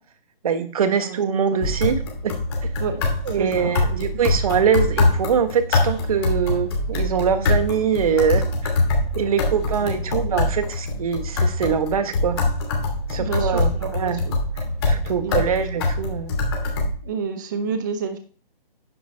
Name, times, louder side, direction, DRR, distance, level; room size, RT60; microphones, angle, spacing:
voice 1, 0.4-2.3 2.6-2.7 3.3-8.4 9.1-12.4 13.1-14.2 14.9-16.4, right 7 dB, 40° right, 9 dB, 1.4 m, -23 dB
sound 1, 1.6-16.9, left 2 dB, 25° left, 2.7 m, -24 dB
voice 2, 3.4-3.8 9.8-9.9 10.2-10.4 13.2-14.4 15.2-15.5 17.0-18.2, right 5 dB, 20° right, 8 dB, 0.8 m, -29 dB
9.9 x 8.5 x 4.5 m, 0.41 s
hypercardioid pair, 160°, 29 cm